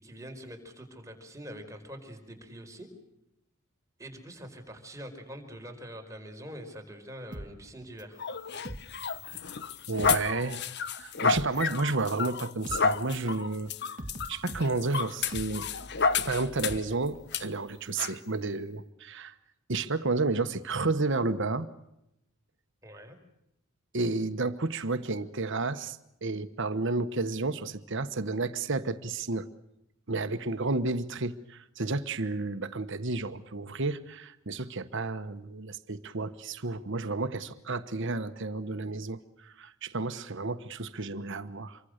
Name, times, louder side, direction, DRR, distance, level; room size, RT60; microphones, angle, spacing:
voice 1, 0.0-2.9 4.0-8.2 22.8-23.2, equal, 15° right, 3 dB, 4.8 m, -44 dB
sound 1, 7.3-9.5 9.8-17.5 17.8-17.9, equal, 40° right, 1.9 m, -44 dB
sound 2, 8.2-16.9 17.3-17.4 18.0-18.2, left 5 dB, 50° left, 1.2 m, -31 dB
voice 2, 9.9-10.6 11.0-13.7 14.3-15.7 16.2-19.4 19.7-21.7 23.9-29.5 30.1-41.8, right 3 dB, 60° right, 10 dB, 1.2 m, -31 dB
27.5 x 24.0 x 6.6 m, 0.84 s
head